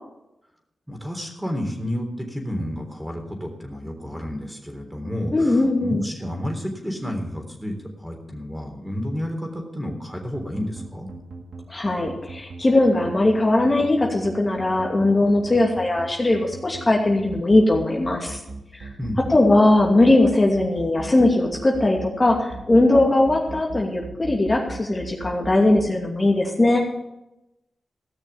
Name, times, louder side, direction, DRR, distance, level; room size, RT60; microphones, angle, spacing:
voice 1, 0.9-11.1 19.0-19.4, equal, 5° right, 3 dB, 3.6 m, -31 dB
voice 2, 5.3-6.0 11.7-18.4 18.8-18.9 19.3-26.8, left 2 dB, 35° left, -1 dB, 2.5 m, -19 dB
sound 1, 10.3-25.9, right 3 dB, 75° right, 1.9 m, -37 dB
16.0 x 6.4 x 7.1 m, 0.91 s
supercardioid pair, 40°, 0 cm